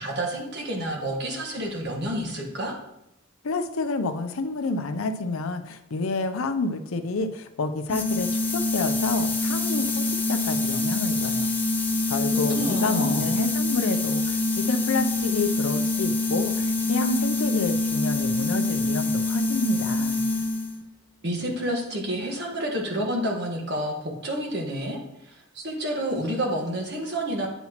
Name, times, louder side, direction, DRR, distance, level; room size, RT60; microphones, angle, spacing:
voice 1, 0.0-2.7 12.3-13.3 21.2-25.0 25.3-27.5, right 1 dB, 55° right, 0 dB, 1.4 m, -29 dB
voice 2, 3.4-11.5 12.1-20.2, left 3 dB, 80° left, 9 dB, 0.6 m, -29 dB
sound 1, 7.9-20.8, left 2 dB, 10° left, 0.5 m, -25 dB
9.0 x 5.7 x 3.0 m, 0.87 s
head